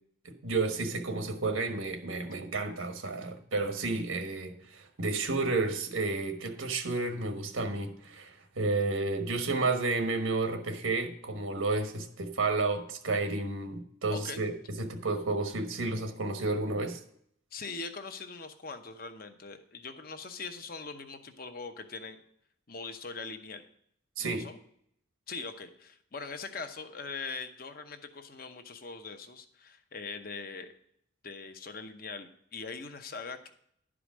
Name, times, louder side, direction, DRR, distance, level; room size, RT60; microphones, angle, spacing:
voice 1, 0.2-17.0 24.2-24.4, right 3 dB, 85° right, 6 dB, 1.2 m, -31 dB
voice 2, 14.1-14.5 17.5-22.2 22.7-23.6 24.2-24.6 25.3-30.7 31.2-33.5, left 4 dB, 45° left, 7 dB, 0.8 m, -41 dB
11.0 x 5.0 x 6.1 m, 0.68 s
head